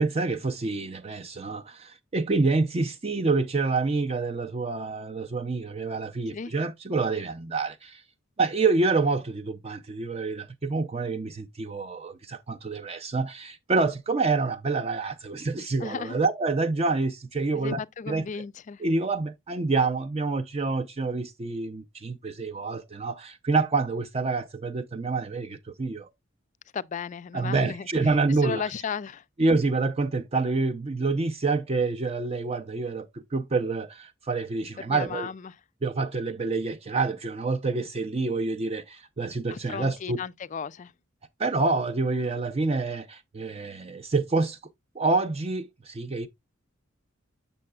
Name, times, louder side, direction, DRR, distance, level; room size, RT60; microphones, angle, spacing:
voice 1, 0.0-8.0 8.4-17.8 18.1-18.2 18.8-26.1 27.3-28.6 29.4-35.3 35.8-40.2 41.4-44.6 44.9-46.3, right 3 dB, 30° right, 0.5 m, -27 dB
voice 2, 15.8-16.2 17.5-18.8 26.7-27.9 28.4-29.2 34.8-35.6 39.5-40.9, left 6 dB, 35° left, 0.4 m, -35 dB
7.5 x 6.6 x 2.3 m
head